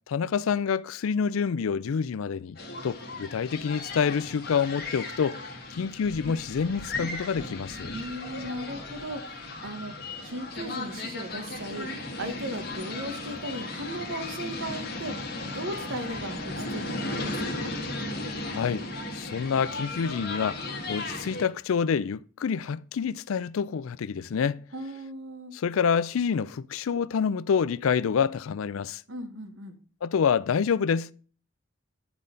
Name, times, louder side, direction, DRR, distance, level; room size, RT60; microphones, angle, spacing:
voice 1, 0.1-2.6 2.8-5.4 5.7-8.0 18.5-18.9 19.1-24.6 25.5-29.0 30.0-31.1, left 6 dB, 85° left, 0.4 m, -27 dB
sound 1, 2.6-21.5, left 2 dB, 50° left, 1.5 m, -36 dB
voice 2, 7.9-9.9 10.2-11.9 12.2-15.3 15.5-17.7 24.7-25.5 29.1-29.8, right 1 dB, 70° right, 1.2 m, -37 dB
10.5 x 4.1 x 5.1 m
head